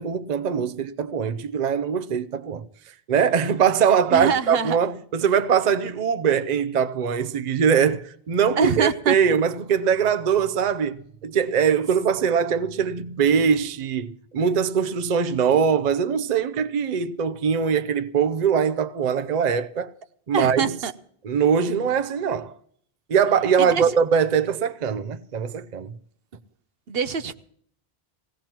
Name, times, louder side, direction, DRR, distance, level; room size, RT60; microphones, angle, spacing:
voice 1, 0.0-2.7 3.1-19.9 20.3-20.7 21.2-22.5 23.1-25.9, right 7 dB, 50° right, 0.7 m, -22 dB
voice 2, 4.1-4.8 8.6-9.1 20.3-20.9 23.6-23.8 26.9-27.3, right 6 dB, 70° right, 1.0 m, -24 dB
20.0 x 16.5 x 3.0 m
omnidirectional pair, 1.0 m